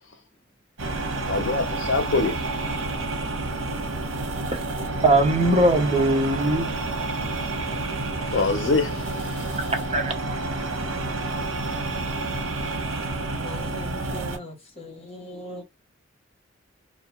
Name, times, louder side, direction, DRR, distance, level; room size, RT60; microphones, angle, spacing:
sound 1, 0.8-14.4, right 2 dB, 80° right, 0.8 m, -29 dB
voice 1, 1.3-2.4 8.2-9.6, left 3 dB, 65° left, 0.7 m, -25 dB
voice 2, 5.0-6.7 9.9-10.6, right 2 dB, 30° right, 0.6 m, -21 dB
voice 3, 13.4-15.6, left 1 dB, 30° left, 0.8 m, -40 dB
2.4 x 2.2 x 2.9 m
head